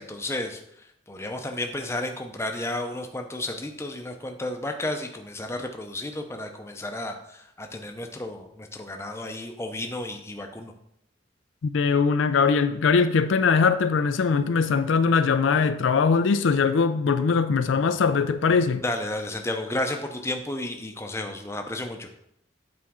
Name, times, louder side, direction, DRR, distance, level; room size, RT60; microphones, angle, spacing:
voice 1, 0.0-10.7 18.8-22.1, left 1 dB, 15° left, 0.6 m, -32 dB
voice 2, 11.6-18.8, left 5 dB, 80° left, 0.4 m, -21 dB
8.6 x 4.3 x 3.7 m
head